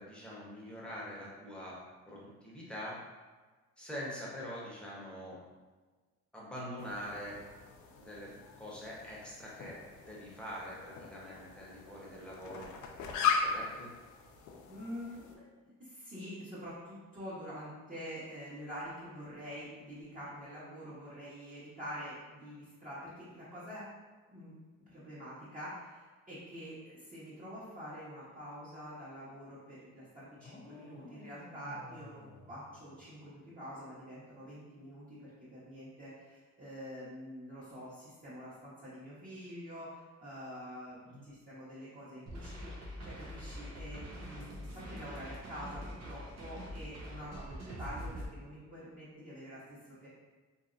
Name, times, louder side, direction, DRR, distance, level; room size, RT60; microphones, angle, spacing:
voice 1, 0.0-1.8 2.1-3.0 3.8-5.4 6.3-7.4 8.0-9.8 10.0-12.7 13.4-13.9 41.1-41.2, equal, 5° left, -6 dB, 0.9 m, -44 dB
sound 1, 6.8-15.3, left 6 dB, 80° left, 0.5 m, -39 dB
voice 2, 14.7-23.8 24.3-24.5 24.9-50.1, equal, 30° right, -12 dB, 1.2 m, -46 dB
sound 2, 30.3-33.5, left 2 dB, 40° left, 0.7 m, -53 dB
sound 3, 42.3-48.3, equal, 60° right, 0.7 m, -44 dB
2.9 x 2.7 x 2.5 m, 1.3 s
cardioid pair, 90°, 30 cm